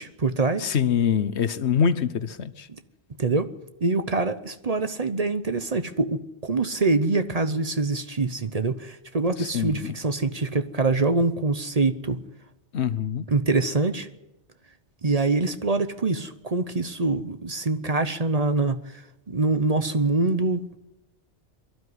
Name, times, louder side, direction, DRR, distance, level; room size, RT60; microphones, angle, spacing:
voice 1, 0.0-0.7 2.7-2.8 3.2-3.5 3.8-12.2 13.3-14.1 15.0-18.8 19.3-20.6, right 3 dB, 35° right, 10 dB, 0.9 m, -24 dB
voice 2, 0.6-2.7 9.4-9.9 12.7-13.3, left 7 dB, 75° left, 14 dB, 1.2 m, -24 dB
23.0 x 12.5 x 9.7 m, 0.95 s
omnidirectional pair, 1.1 m